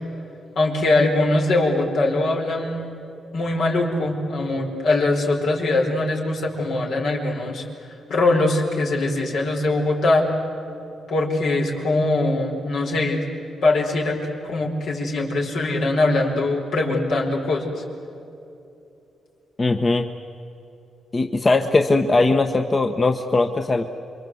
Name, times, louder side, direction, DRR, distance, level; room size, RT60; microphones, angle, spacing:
voice 1, 0.5-2.9 3.3-7.7 8.1-10.3 11.1-13.2 13.6-14.2 14.4-17.7, left 2 dB, 75° left, 0 dB, 4.7 m, -22 dB
voice 2, 19.6-20.1 21.1-23.8, left 3 dB, 30° left, 6 dB, 1.1 m, -19 dB
28.0 x 23.5 x 7.9 m, 2.8 s
cardioid pair, 85°, 0 cm